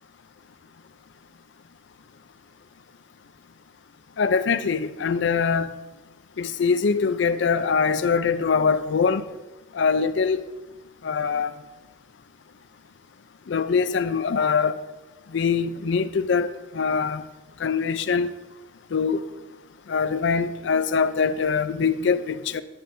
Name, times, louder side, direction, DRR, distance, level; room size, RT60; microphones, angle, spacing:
voice 1, 4.2-5.7 6.4-9.2 9.7-10.4 11.0-11.5 13.5-14.8 15.3-17.2 17.6-18.3 18.9-19.2 19.9-22.6, left 5 dB, 70° left, 0.5 m, -23 dB
10.0 x 9.4 x 2.7 m
head